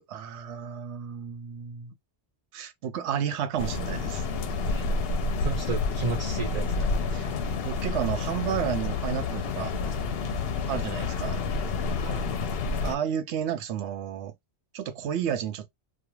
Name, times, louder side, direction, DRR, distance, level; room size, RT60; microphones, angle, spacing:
voice 1, 0.0-1.9 2.5-4.2 7.1-7.3 7.6-9.7 10.7-11.4 12.8-14.3 14.7-15.7, right 9 dB, 85° right, 0.9 m, -32 dB
sound 1, 3.6-13.0, left 4 dB, 65° left, 0.8 m, -29 dB
voice 2, 5.4-7.0 12.0-12.2, right 4 dB, 50° right, 0.5 m, -33 dB
2.3 x 2.3 x 3.0 m
omnidirectional pair, 1.1 m